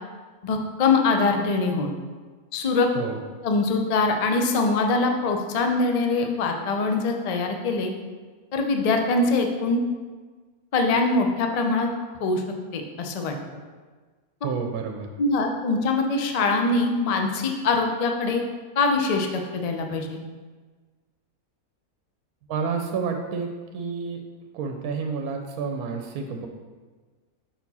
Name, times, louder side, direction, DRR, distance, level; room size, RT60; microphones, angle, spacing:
voice 1, 0.4-1.9 2.5-2.9 3.4-7.9 8.5-9.8 10.7-11.9 12.2-12.4 12.7-13.3 15.2-18.4 18.8-20.2, left 3 dB, 75° left, 4 dB, 0.3 m, -23 dB
voice 2, 14.4-15.1 22.5-24.2 24.5-26.5, right 5 dB, 80° right, 4 dB, 1.1 m, -29 dB
5.9 x 4.5 x 4.1 m, 1.4 s
omnidirectional pair, 1.5 m